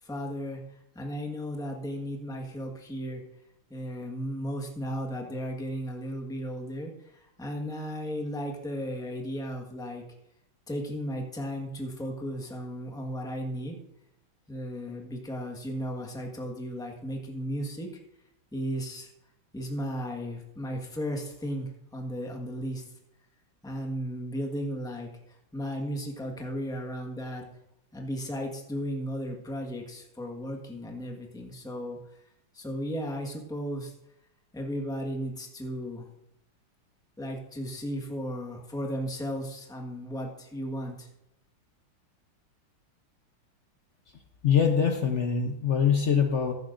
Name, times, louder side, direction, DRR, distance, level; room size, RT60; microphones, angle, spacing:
voice 1, 0.0-3.2 3.7-10.0 10.7-13.8 14.5-17.9 18.5-19.1 19.5-22.8 23.6-27.5 27.9-32.2 32.5-33.9 34.5-36.1 37.2-41.1, equal, ahead, 1 dB, 1.1 m, -35 dB
voice 2, 44.4-46.5, left 7 dB, 60° left, 4 dB, 0.7 m, -23 dB
15.0 x 11.5 x 2.6 m, 0.82 s
omnidirectional pair, 2.3 m